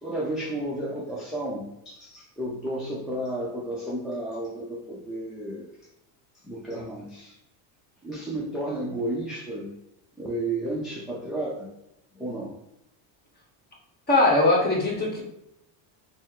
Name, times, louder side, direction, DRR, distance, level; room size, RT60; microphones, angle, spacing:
voice 1, 0.0-5.7 6.4-7.4 8.0-9.7 10.2-11.7 12.1-12.6, right 1 dB, ahead, -5 dB, 0.3 m, -32 dB
voice 2, 14.1-15.2, left 2 dB, 20° left, -1 dB, 1.1 m, -20 dB
4.2 x 2.0 x 3.6 m, 0.86 s
cardioid pair, 115°, 48 cm